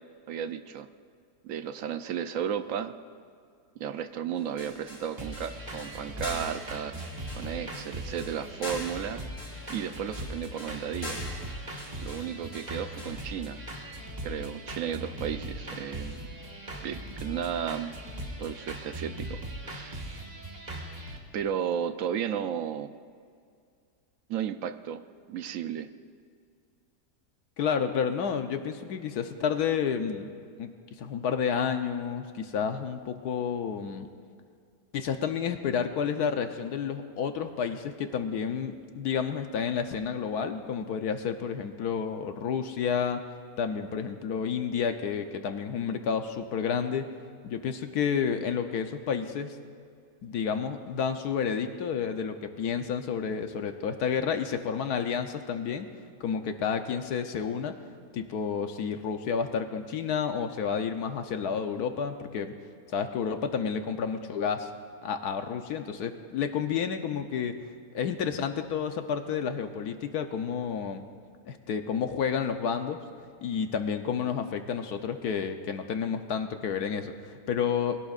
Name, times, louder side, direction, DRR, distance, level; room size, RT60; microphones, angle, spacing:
voice 1, 0.3-0.9 1.4-2.9 3.8-7.1 7.3-9.2 9.7-11.2 12.0-13.6 14.2-16.3 16.8-17.9 18.4-20.1 21.3-23.0 24.3-25.9, right 8 dB, 65° right, 10 dB, 0.8 m, -34 dB
sound 1, 4.4-13.2, left 1 dB, 55° left, 4.4 m, -43 dB
sound 2, 5.2-21.2, right 1 dB, 25° right, 1.5 m, -39 dB
voice 2, 27.6-30.3 30.6-34.1 34.9-43.2 43.6-47.1 47.4-49.6 50.2-55.9 56.2-57.8 58.1-62.5 62.9-64.7 65.0-67.5 67.9-71.0 71.5-73.0 73.4-78.0, left 7 dB, 70° left, 7 dB, 1.3 m, -30 dB
22.5 x 17.0 x 2.5 m, 2.2 s
omnidirectional pair, 1.8 m